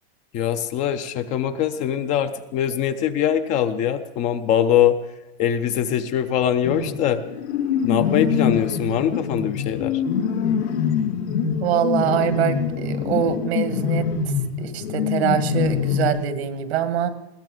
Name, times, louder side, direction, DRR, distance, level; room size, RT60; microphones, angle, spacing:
voice 1, 0.3-5.0 5.4-7.2 7.8-10.0, left 10 dB, 25° left, 10 dB, 0.5 m, -22 dB
sound 1, 6.6-16.1, left 7 dB, 85° left, 2.4 m, -24 dB
voice 2, 11.6-14.1 14.6-17.1, right 9 dB, 80° right, 9 dB, 1.8 m, -24 dB
21.0 x 16.0 x 3.8 m, 1.0 s
supercardioid pair, 165°, 32 cm